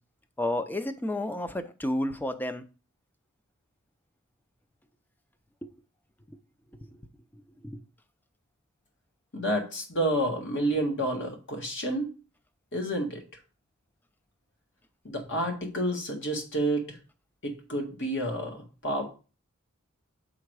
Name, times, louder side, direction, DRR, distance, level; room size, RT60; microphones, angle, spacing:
voice 1, 0.4-2.6 7.6-7.8, left 1 dB, 10° left, 10 dB, 0.5 m, -31 dB
voice 2, 9.3-12.1 12.7-13.2 15.0-17.0 17.4-19.1, right 1 dB, 60° left, 3 dB, 1.8 m, -29 dB
7.6 x 3.7 x 4.7 m, 0.34 s
head